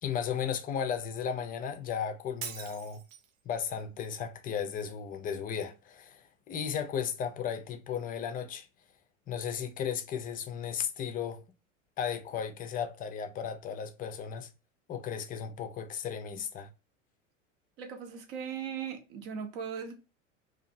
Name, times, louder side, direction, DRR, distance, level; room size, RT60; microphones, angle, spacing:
voice 1, 0.0-3.0 3.5-8.7 9.3-11.4 12.0-14.5 14.9-16.7, left 7 dB, 25° left, 0.4 m, -35 dB
Shatter, 2.4-3.4, right 7 dB, 85° right, 0.6 m, -42 dB
voice 2, 17.8-19.9, right 7 dB, 55° right, 0.9 m, -38 dB
2.6 x 2.4 x 2.5 m
hypercardioid pair, 90°, 39 cm